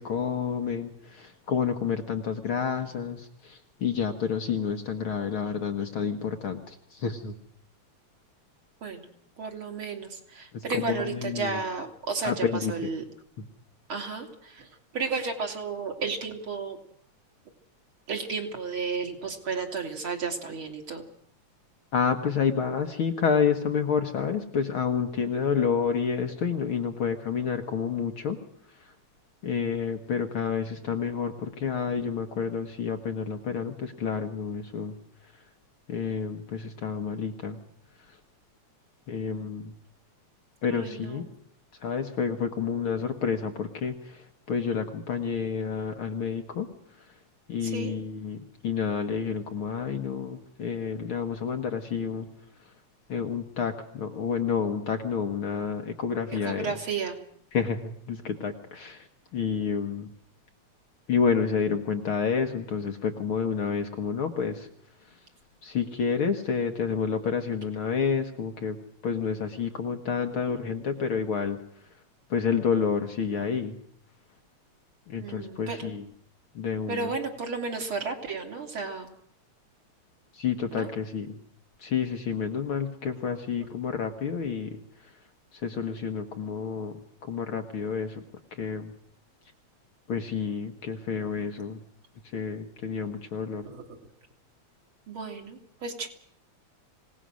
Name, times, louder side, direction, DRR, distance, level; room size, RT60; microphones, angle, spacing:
voice 1, 0.0-7.3 10.5-11.6 12.2-12.7 13.4-13.5 21.9-28.4 29.4-35.0 35.9-37.6 39.1-39.7 40.6-41.2 41.8-46.7 47.5-52.3 53.1-56.7 57.5-59.1 59.3-60.1 61.1-64.7 65.6-68.8 69.0-71.6 72.3-73.7 75.1-76.0 76.6-77.1 80.3-81.4 81.8-84.8 85.6-86.9 87.2-88.2 88.6-88.9 90.1-91.8 92.3-93.6, left 6 dB, 55° left, 5 dB, 1.9 m, -29 dB
voice 2, 9.4-13.0 13.9-14.7 14.9-16.8 18.1-21.0 39.3-39.5 40.7-41.3 47.6-47.9 56.4-57.2 75.2-75.9 76.9-79.1 80.7-80.9 93.6-94.0 95.1-96.1, right 4 dB, 45° right, 3 dB, 3.4 m, -33 dB
26.5 x 18.0 x 6.3 m, 0.65 s
omnidirectional pair, 3.3 m